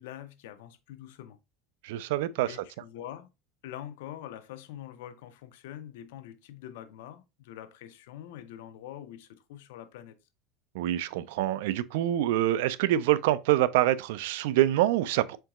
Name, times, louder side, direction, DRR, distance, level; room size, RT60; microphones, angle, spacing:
voice 1, 0.0-1.4 2.4-3.3 3.6-10.2, left 11 dB, 85° left, 0.5 m, -44 dB
voice 2, 1.8-2.6 10.7-15.4, right 14 dB, 75° right, 0.3 m, -26 dB
4.4 x 3.8 x 2.3 m
cardioid pair, 165°, 0 cm